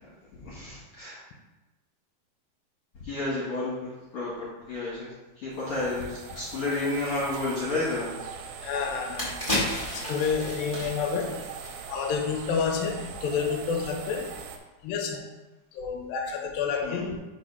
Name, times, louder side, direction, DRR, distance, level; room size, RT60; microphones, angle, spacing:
voice 1, 0.3-1.2 3.0-4.3 4.7-5.1 5.4-8.1 16.8-17.1, left 2 dB, 50° left, -9 dB, 2.0 m, -31 dB
sound 1, 5.5-14.6, right 6 dB, 85° right, 2.5 m, -41 dB
voice 2, 8.6-9.4 9.9-11.4 11.9-14.3 14.8-15.3 15.7-17.2, left 6 dB, 75° left, 3 dB, 2.2 m, -29 dB
sound 2, 8.9-12.2 12.5-12.7, left 1 dB, 20° left, 0.9 m, -33 dB
5.1 x 4.1 x 5.4 m, 1.1 s
omnidirectional pair, 4.4 m